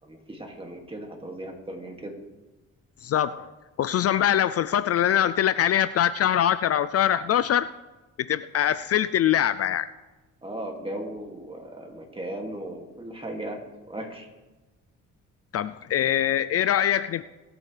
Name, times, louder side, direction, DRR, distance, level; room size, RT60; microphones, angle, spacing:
voice 1, 0.0-2.2 10.4-14.3, right 1 dB, 20° right, 2 dB, 2.4 m, -37 dB
voice 2, 3.0-3.5 3.8-7.7 8.3-9.9 15.5-17.2, left 10 dB, 55° left, 13 dB, 0.4 m, -23 dB
21.5 x 8.8 x 3.4 m, 1.2 s
cardioid pair, 90°, 30 cm